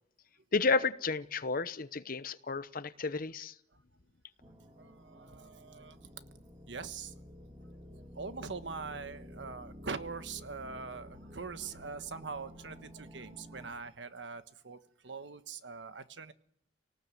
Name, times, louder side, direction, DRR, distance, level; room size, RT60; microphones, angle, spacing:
voice 1, 0.5-3.5, left 4 dB, 50° left, 13 dB, 0.9 m, -32 dB
sound 1, 4.4-13.7, equal, 30° right, 3.4 m, -52 dB
voice 2, 4.8-6.1 6.7-7.1 8.1-16.3, right 4 dB, 90° right, 10 dB, 1.3 m, -43 dB
28.5 x 18.5 x 7.8 m, 0.75 s
head